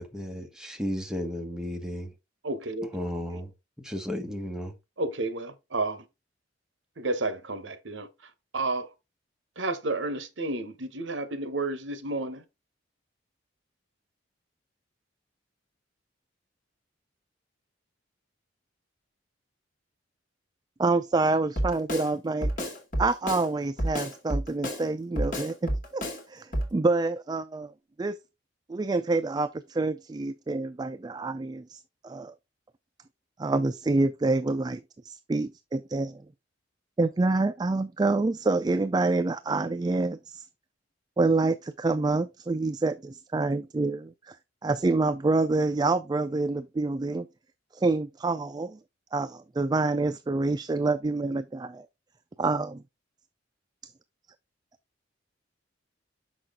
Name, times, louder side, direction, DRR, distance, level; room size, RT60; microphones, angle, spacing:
voice 1, 0.0-2.1 2.9-3.5 3.8-4.7, equal, 5° right, 1.2 m, -34 dB
voice 2, 2.4-3.0 3.3-3.4 5.0-6.1 7.0-8.9 9.6-12.4, right 2 dB, 70° right, 1.1 m, -31 dB
voice 3, 20.8-22.5 23.0-27.7 28.0-28.2 28.7-32.3 33.4-36.2 37.0-40.4 41.2-44.4 44.6-47.3 47.7-48.8 49.1-51.9 52.4-52.8, right 3 dB, 20° right, 0.3 m, -27 dB
Drum kit, 21.6-22.1 22.4-23.5 23.8-24.8 25.2-26.2 26.5-26.7, equal, 45° left, 2.6 m, -29 dB
6.6 x 6.1 x 3.6 m
head